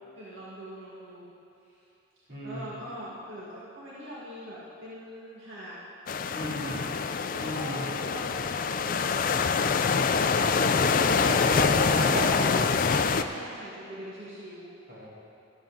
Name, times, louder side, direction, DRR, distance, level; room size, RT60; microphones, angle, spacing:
voice 1, 0.1-1.3 1.6-1.8 2.4-5.8 6.3-8.4 8.7-11.6 12.0-14.7, equal, 75° right, -8 dB, 1.8 m, -43 dB
voice 2, 2.3-2.7 6.3-6.8 7.4-7.8 11.1-12.3 14.9-15.1, equal, 50° right, -7 dB, 3.2 m, -33 dB
sound 1, 6.1-13.2, left 5 dB, 45° left, 0.4 m, -25 dB
13.0 x 11.5 x 3.9 m, 2.7 s
head